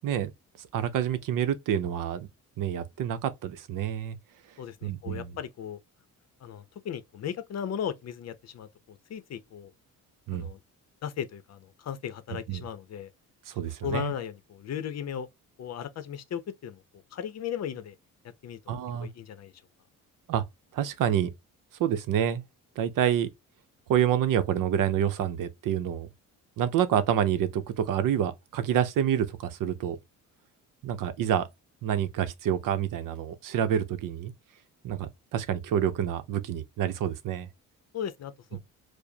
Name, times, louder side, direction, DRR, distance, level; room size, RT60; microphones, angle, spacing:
voice 1, 0.7-2.3 2.6-4.2 4.8-5.3 10.3-10.5 12.5-12.6 13.5-14.1 18.7-19.1 20.3-20.4 20.7-21.3 21.8-22.4 22.8-23.3 23.9-26.1 26.6-30.0 30.8-31.5 31.8-34.3 34.8-37.5, right 9 dB, 70° right, 0.7 m, -27 dB
voice 2, 4.6-5.8 6.4-9.7 10.3-10.6 11.0-13.1 13.8-15.3 15.6-16.8 17.1-18.0 18.4-19.5 37.9-38.6, left 9 dB, 50° left, 0.6 m, -36 dB
4.8 x 2.1 x 2.7 m
cardioid pair, 120°, 33 cm